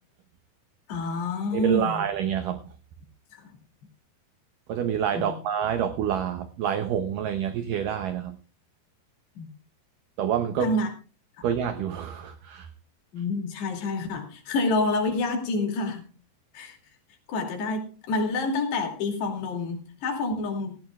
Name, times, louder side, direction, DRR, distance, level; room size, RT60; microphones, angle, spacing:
voice 1, 0.9-2.0 3.3-3.5 5.1-5.4 9.4-9.5 10.6-10.9 11.4-11.5 13.1-16.1 16.5-16.8 17.3-20.8, left 2 dB, 75° left, 3 dB, 4.7 m, -28 dB
voice 2, 1.5-2.7 4.7-8.4 10.2-10.7 11.4-12.7, right 8 dB, 85° right, 9 dB, 1.9 m, -27 dB
17.5 x 16.0 x 2.4 m, 0.35 s
omnidirectional pair, 4.9 m